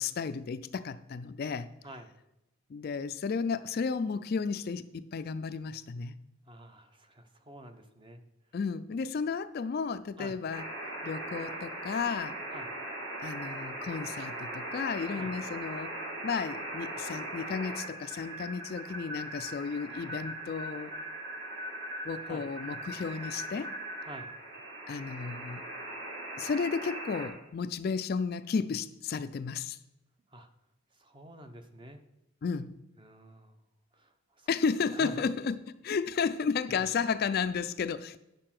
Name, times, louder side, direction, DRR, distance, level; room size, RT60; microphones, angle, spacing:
voice 1, 0.0-1.7 2.7-6.2 8.5-10.7 11.0-12.4 13.2-16.0 16.2-20.9 22.0-23.7 24.9-25.6 26.4-29.8 32.4-32.7 34.5-38.2, left 5 dB, 45° left, 12 dB, 0.3 m, -33 dB
voice 2, 6.5-8.2 10.2-10.4 12.5-12.7 15.2-15.3 22.2-22.4 24.0-24.3 30.3-30.5 30.9-32.0 33.0-33.6 33.9-34.5 34.9-35.2 36.8-36.9, right 1 dB, 25° right, 8 dB, 0.7 m, -48 dB
sound 1, 10.5-27.3, right 1 dB, 55° right, 3.2 m, -40 dB
9.8 x 6.6 x 5.9 m, 0.90 s
head